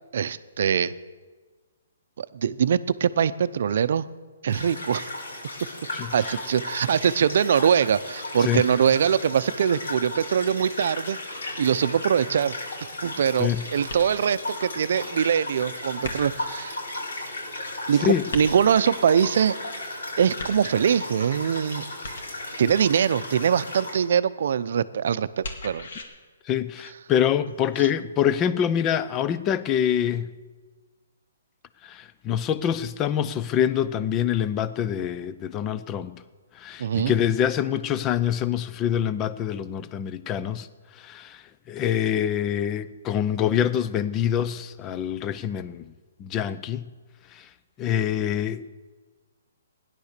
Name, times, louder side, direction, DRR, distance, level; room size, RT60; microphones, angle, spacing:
voice 1, 0.1-0.9 2.2-4.1 4.4-5.1 6.1-11.2 11.6-12.6 13.0-16.7 17.9-19.5 20.2-21.8 22.6-25.9 36.8-37.1, right 8 dB, 55° right, 0.6 m, -23 dB
sound 1, 4.5-24.0, left 2 dB, 85° left, 5.5 m, -35 dB
voice 2, 5.9-6.4 8.4-8.6 13.4-13.6 18.0-18.2 26.5-30.3 31.8-36.2 36.6-40.7 41.0-45.8 46.2-46.9 47.4-47.5 47.8-48.6, left 9 dB, 15° left, 0.5 m, -25 dB
sound 2, 13.9-14.4 16.0-16.6 18.3-18.9 20.4-21.0 22.0-22.6 25.4-26.0, left 2 dB, 60° left, 2.2 m, -37 dB
16.0 x 10.5 x 6.7 m
hypercardioid pair, 165°, 0 cm